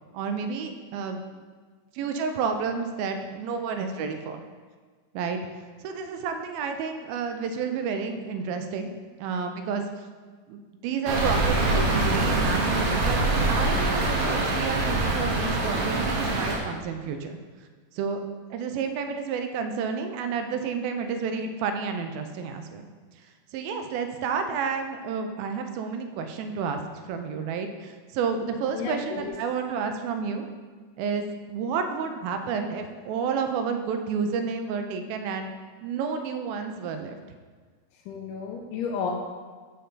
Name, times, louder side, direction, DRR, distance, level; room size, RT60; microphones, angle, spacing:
voice 1, 0.1-1.2 1.9-4.4 5.1-5.4 5.8-8.9 9.2-9.8 10.5-13.2 13.5-17.4 17.9-18.2 18.5-22.9 23.5-26.8 27.1-30.5 31.0-35.5 35.8-37.2, right 5 dB, 85° right, 6 dB, 2.4 m, -30 dB
sound 1, 11.1-16.6, right 2 dB, 65° right, 2.1 m, -24 dB
voice 2, 28.7-29.3 38.1-39.1, left 5 dB, 80° left, -1 dB, 2.2 m, -32 dB
6.7 x 6.5 x 3.9 m, 1.5 s
omnidirectional pair, 4.2 m